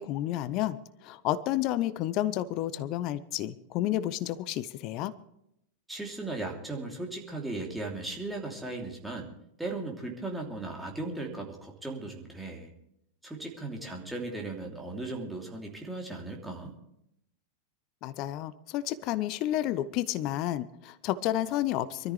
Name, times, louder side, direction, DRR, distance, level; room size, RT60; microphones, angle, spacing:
voice 1, 0.0-5.1 18.0-22.1, left 13 dB, 40° left, 15 dB, 0.7 m, -31 dB
voice 2, 5.9-9.3 9.6-12.7 13.2-16.7, right 2 dB, 5° right, -1 dB, 3.1 m, -37 dB
23.5 x 13.5 x 3.4 m, 0.78 s
figure-of-eight pair, 90°, 0 cm